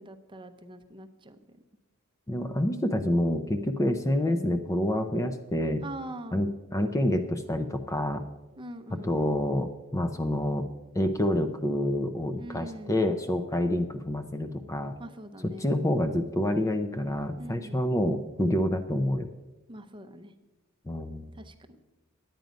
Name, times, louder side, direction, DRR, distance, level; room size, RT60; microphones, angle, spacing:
voice 1, 0.0-1.6 5.8-6.4 8.6-9.3 12.4-13.0 15.0-15.7 17.4-17.8 19.7-20.3 21.3-21.8, right 1 dB, 25° right, 8 dB, 0.7 m, -43 dB
voice 2, 2.3-5.8 6.3-8.2 9.0-10.6 10.9-15.0 15.6-19.3 20.9-21.3, left 1 dB, 15° left, 7 dB, 0.5 m, -27 dB
10.5 x 9.1 x 5.1 m, 1.1 s
head